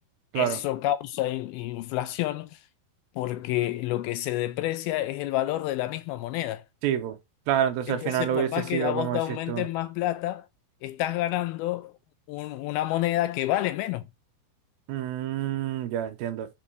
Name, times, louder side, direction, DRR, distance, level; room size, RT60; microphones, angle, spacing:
voice 1, 0.4-2.6 3.2-6.6 7.9-10.5 10.8-11.9 12.3-14.1, left 15 dB, 80° left, 2.3 m, -29 dB
voice 2, 6.8-7.2 7.5-9.2 9.5-9.6 14.9-16.5, right 10 dB, 75° right, 2.5 m, -27 dB
5.3 x 4.8 x 4.5 m
omnidirectional pair, 4.7 m